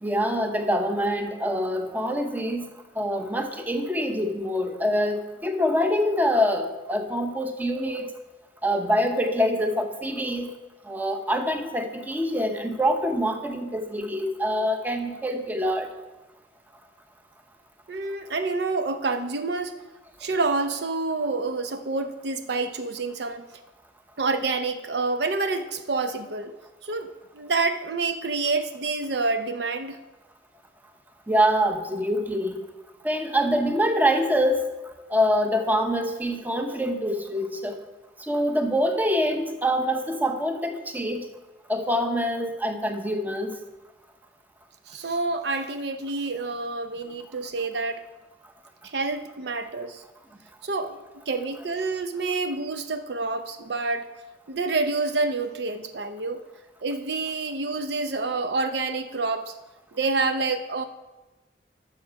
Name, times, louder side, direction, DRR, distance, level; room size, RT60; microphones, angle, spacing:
voice 1, 0.0-2.7 2.9-8.1 8.6-10.5 10.9-15.9 31.3-32.6 33.0-34.7 35.1-37.8 38.2-41.3 41.7-43.5, equal, 10° right, 5 dB, 0.8 m, -25 dB
voice 2, 17.9-19.7 20.2-23.5 24.2-26.5 26.8-30.0 44.9-48.0 48.8-50.0 50.6-51.0 51.3-54.1 54.5-56.4 56.8-59.5 59.9-60.8, right 3 dB, 65° right, 8 dB, 0.7 m, -28 dB
12.5 x 6.4 x 4.7 m, 1.1 s
head